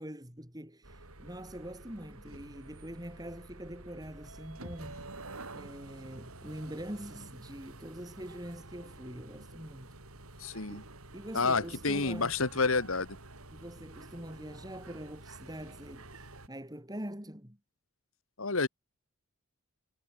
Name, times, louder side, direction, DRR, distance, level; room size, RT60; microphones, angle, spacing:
voice 1, 0.0-5.2 5.5-9.9 10.3-12.3 13.5-17.6, equal, 15° right, 5.4 m, -44 dB
sound 1, 0.8-16.5, right 2 dB, 75° right, 4.8 m, -49 dB
voice 2, 10.4-10.8 11.3-13.1 18.4-18.7, left 4 dB, 65° left, 1.7 m, -29 dB
head